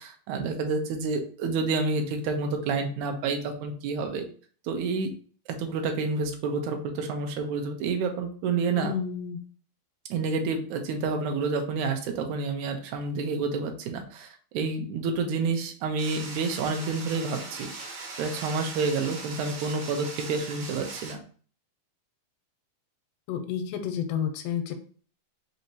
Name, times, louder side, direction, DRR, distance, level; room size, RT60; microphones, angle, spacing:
voice 1, 0.0-4.2 4.6-5.1 5.5-8.9 10.1-17.7 18.2-21.2, right 4 dB, 80° right, 4 dB, 1.8 m, -29 dB
voice 2, 8.7-9.4 23.3-24.7, left 8 dB, 85° left, 7 dB, 2.3 m, -30 dB
sound 1, 16.0-21.1, right 3 dB, 60° right, 2.3 m, -40 dB
5.4 x 2.7 x 2.8 m, 0.43 s
omnidirectional pair, 4.1 m